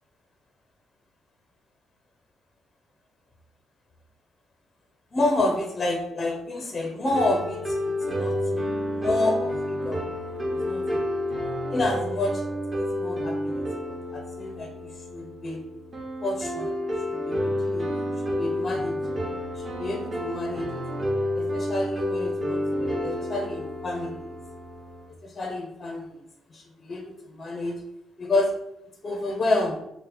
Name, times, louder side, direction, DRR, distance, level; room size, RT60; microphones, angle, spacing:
voice 1, 5.1-7.7 8.1-10.0 10.6-11.2 11.7-12.4 12.8-13.6 13.9-14.7 15.1-15.6 16.2-16.8 17.1-18.0 18.3-19.0 19.5-20.8 21.3-24.3 25.2-26.0 26.5-27.8 28.2-28.6 29.0-29.8, left 2 dB, 35° left, 3 dB, 0.4 m, -29 dB
sound 1, 7.1-25.1, left 1 dB, 40° right, 0.8 m, -30 dB
2.7 x 2.0 x 3.7 m, 0.81 s
cardioid pair, 90°, 0 cm